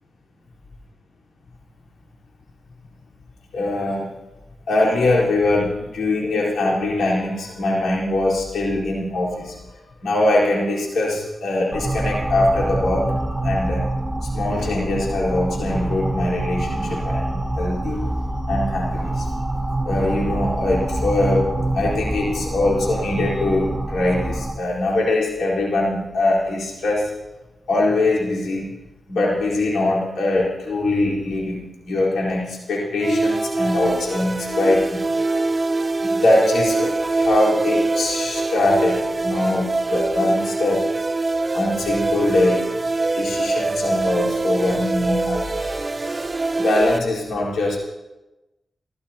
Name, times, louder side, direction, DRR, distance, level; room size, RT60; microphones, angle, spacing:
voice 1, 3.5-4.1 4.7-13.1 13.4-13.9 14.2-18.1 18.5-19.3 19.8-27.1 27.7-28.8 29.1-35.0 36.0-40.9 41.5-42.8 43.1-45.7 46.0-46.3 46.6-47.8, left 2 dB, 90° left, -4 dB, 4.3 m, -22 dB
sound 1, 11.7-24.5, right 1 dB, 10° right, 1.9 m, -25 dB
sound 2, 33.0-47.0, right 3 dB, 30° right, 0.7 m, -24 dB
28.0 x 14.0 x 2.9 m, 1.0 s
cardioid pair, 65°, 0 cm